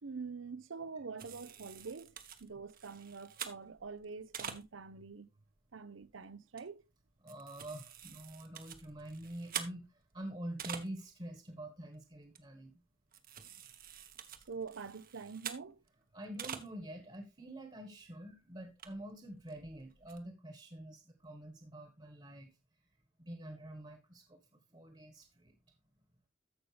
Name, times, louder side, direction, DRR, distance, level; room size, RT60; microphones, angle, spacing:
voice 1, 0.0-2.1 2.4-5.3 5.7-6.8 14.5-15.8, right 5 dB, 80° right, 0.7 m, -45 dB
sound 1, 1.2-5.0 5.6-5.7 6.0-6.1 6.5-6.6 7.0-11.2 11.5-11.6 11.9-12.0 12.3-12.7 13.1-15.9 16.2-16.7 17.1-17.2 17.6-17.7 18.0-18.1 18.6-20.2, right 8 dB, 50° right, 1.0 m, -47 dB
voice 2, 7.2-12.7 16.1-22.5 23.2-24.4 24.7-25.5, right 1 dB, 30° right, 1.4 m, -46 dB
14.0 x 5.6 x 3.3 m
head